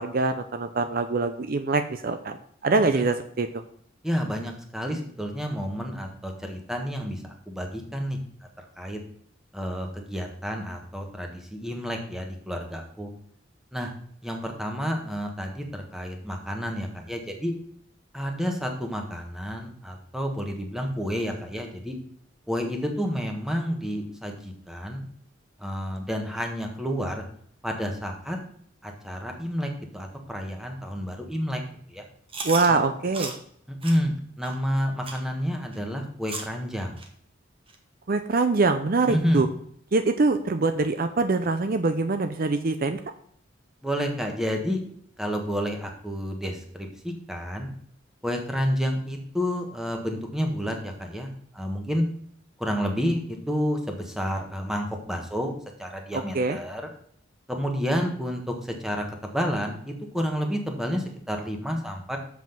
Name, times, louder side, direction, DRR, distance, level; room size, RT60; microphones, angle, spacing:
voice 1, 0.0-2.4 2.6-3.6 32.4-33.3 38.1-39.5 39.9-43.0 56.1-56.6, right 3 dB, 50° right, 8 dB, 0.6 m, -24 dB
voice 2, 4.0-8.2 8.6-9.0 9.5-13.1 13.7-13.9 14.2-17.5 18.1-22.0 22.5-25.0 25.6-27.2 27.6-28.4 28.8-31.6 31.9-32.0 32.7-32.8 33.7-37.0 39.1-39.4 43.8-44.8 45.2-47.7 48.2-52.0 52.6-55.5 55.8-56.8 57.5-62.2, equal, 5° right, 2 dB, 1.4 m, -30 dB
Chewing mastication, 32.3-32.7 33.1-33.4 33.8-34.0 34.4-34.5 35.0-35.2 35.7-35.8 36.3-36.5 37.0-37.1 37.7-37.8 38.3-38.4 39.0-39.1, right 3 dB, 30° right, 1.3 m, -35 dB
7.4 x 5.8 x 5.8 m, 0.64 s
head